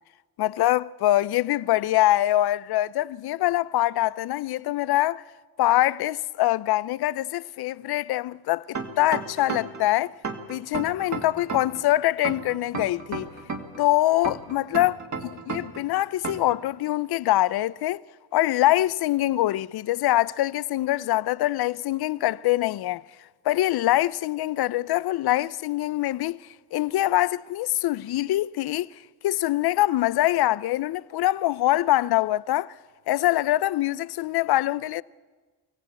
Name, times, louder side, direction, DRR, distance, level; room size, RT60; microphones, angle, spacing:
voice 1, 0.4-5.2 5.6-10.1 10.5-13.3 13.8-15.0 15.2-18.0 18.3-23.0 23.4-26.4 26.7-28.9 29.2-32.7 33.1-35.0, left 15 dB, 65° left, 0.6 m, -24 dB
sound 1, 8.7-9.8 10.2-11.8 12.2-13.8 14.2-15.8 16.2-16.6, right 5 dB, 45° right, 2.2 m, -32 dB
23.5 x 15.0 x 8.3 m
cardioid pair, 95°, 41 cm